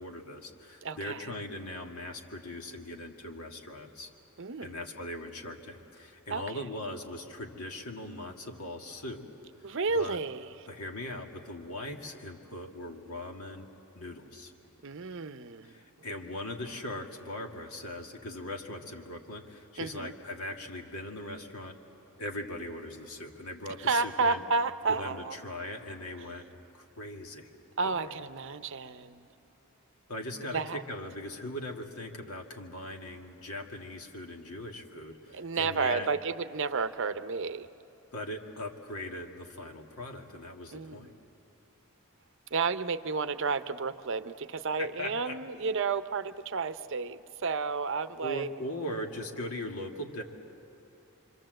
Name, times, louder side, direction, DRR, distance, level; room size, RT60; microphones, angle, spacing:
voice 1, 0.0-4.1 4.6-9.3 9.6-10.2 10.7-13.7 13.9-14.5 15.6-21.8 22.2-24.4 24.9-26.5 26.7-27.5 27.8-28.1 30.1-36.1 38.1-41.1 44.8-45.4 48.2-50.2, left 1 dB, 80° left, 2 dB, 2.1 m, -40 dB
voice 2, 0.8-1.2 4.4-4.7 6.3-6.6 9.6-10.5 14.8-15.8 19.8-20.1 23.8-25.4 27.8-29.3 30.5-30.8 35.3-37.7 40.7-41.1 42.5-48.5, right 4 dB, 60° right, 11 dB, 0.7 m, -31 dB
26.5 x 25.5 x 7.8 m, 2.8 s
head